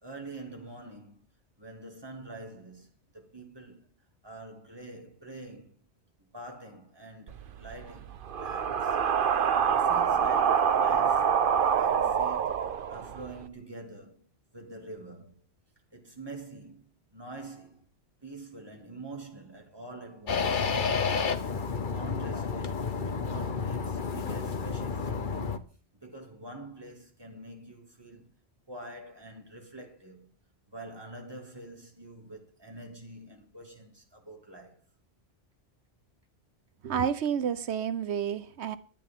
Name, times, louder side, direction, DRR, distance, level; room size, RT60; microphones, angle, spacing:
voice 1, 0.0-1.3 1.6-3.9 4.2-5.8 6.2-9.0 9.7-11.4 11.6-15.4 15.9-17.8 18.2-20.7 21.4-25.6 26.0-28.3 28.7-30.3 30.7-34.8, right 2 dB, 20° right, 2.6 m, -46 dB
sound 1, 7.3-13.4, right 7 dB, 55° right, 0.9 m, -26 dB
sound 2, 20.3-25.6, left 5 dB, 50° left, 1.1 m, -30 dB
voice 2, 36.8-38.8, right 8 dB, 90° right, 1.1 m, -30 dB
19.0 x 12.0 x 3.8 m
omnidirectional pair, 1.1 m